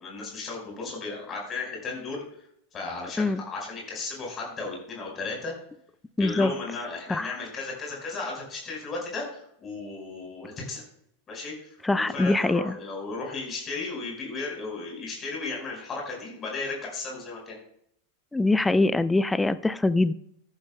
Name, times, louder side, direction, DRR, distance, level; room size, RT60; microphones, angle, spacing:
voice 1, 0.0-2.2 2.7-5.5 6.2-10.8 11.3-17.6, left 3 dB, 25° left, -1 dB, 4.9 m, -35 dB
voice 2, 6.2-6.5 7.1-7.3 11.8-12.8 18.3-20.1, left 2 dB, 10° left, 15 dB, 0.4 m, -23 dB
15.5 x 10.5 x 2.3 m, 0.71 s
figure-of-eight pair, 90°, 0 cm